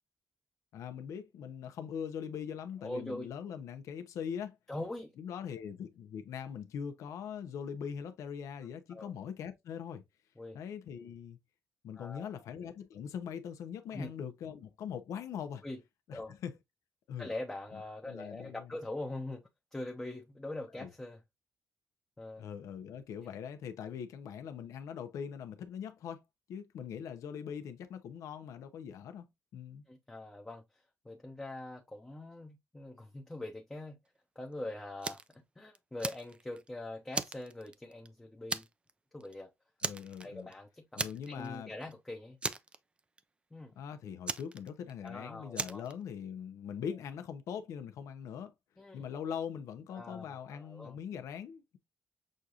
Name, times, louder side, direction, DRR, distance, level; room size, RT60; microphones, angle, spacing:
voice 1, 0.7-4.6 5.2-10.0 10.5-11.4 11.8-15.6 16.1-16.5 17.1-17.3 17.7-17.8 18.1-18.7 20.8-20.9 22.4-26.2 26.5-29.3 29.5-29.8 39.8-40.5 41.0-41.7 43.8-48.5 48.9-51.8, left 8 dB, 90° left, 0.6 m, -41 dB
voice 2, 2.8-3.3 4.7-5.1 8.9-9.1 10.4-10.6 11.9-12.3 13.9-14.1 15.6-15.8 16.1-16.3 17.2-19.4 19.7-21.2 22.2-22.5 23.2-23.3 29.9-34.0 34.4-38.7 39.1-39.5 40.2-42.4 43.5-43.7 45.0-45.8 48.8-49.0 49.9-51.0, left 2 dB, 10° left, 0.6 m, -43 dB
Fire, 35.0-35.3 35.7-36.7 37.1-38.1 38.5-38.9 39.2-39.3 39.8-40.5 41.0-41.5 41.8-41.9 42.4-43.2 44.3-45.1 45.5-45.9, right 3 dB, 20° right, 0.3 m, -37 dB
6.3 x 2.4 x 2.7 m
cardioid pair, 135°, 5 cm